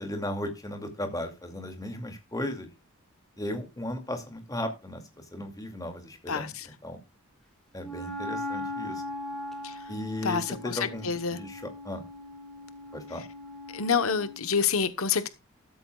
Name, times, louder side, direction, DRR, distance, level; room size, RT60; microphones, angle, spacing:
voice 1, 0.0-2.7 3.4-5.0 5.3-6.5 6.8-7.0 7.7-9.0 9.9-12.0 12.9-13.2, left 1 dB, 15° left, 2.4 m, -36 dB
voice 2, 6.3-6.7 9.6-9.8 10.2-11.4 13.7-15.3, left 6 dB, 75° left, 1.1 m, -28 dB
Wind instrument woodwind instrument, 7.8-14.5, left 1 dB, ahead, 3.0 m, -39 dB
14.0 x 13.5 x 2.4 m
head